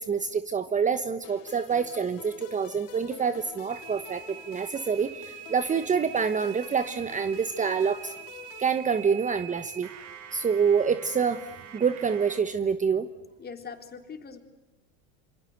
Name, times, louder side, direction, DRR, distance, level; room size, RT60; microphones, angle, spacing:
voice 1, 0.0-8.1 8.6-9.9 10.3-11.5 11.7-13.1, right 6 dB, 20° right, 12 dB, 1.2 m, -27 dB
sound 1, 1.2-9.5, left 11 dB, 75° left, 4.3 m, -48 dB
sound 2, 3.7-12.4, right 11 dB, 50° right, 3.8 m, -45 dB
voice 2, 13.4-14.4, left 5 dB, 25° left, 6 dB, 4.0 m, -41 dB
28.0 x 25.5 x 8.0 m, 1.1 s
supercardioid pair, 110°, 38 cm